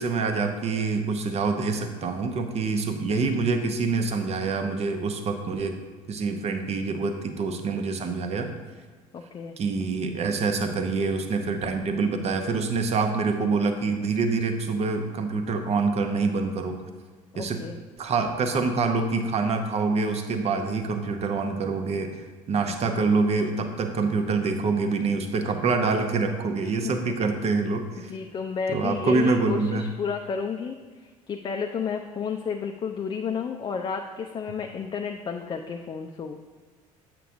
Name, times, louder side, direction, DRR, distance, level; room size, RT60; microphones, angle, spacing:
voice 1, 0.0-5.7 6.1-8.5 9.6-16.8 17.4-17.6 18.0-28.1 28.7-29.9, right 4 dB, 35° right, 6 dB, 0.7 m, -26 dB
voice 2, 9.1-9.6 17.3-17.8 22.9-23.1 26.6-26.9 28.0-36.4, left 6 dB, 25° left, 3 dB, 0.4 m, -32 dB
7.8 x 5.9 x 2.6 m, 1.4 s
figure-of-eight pair, 60°, 18 cm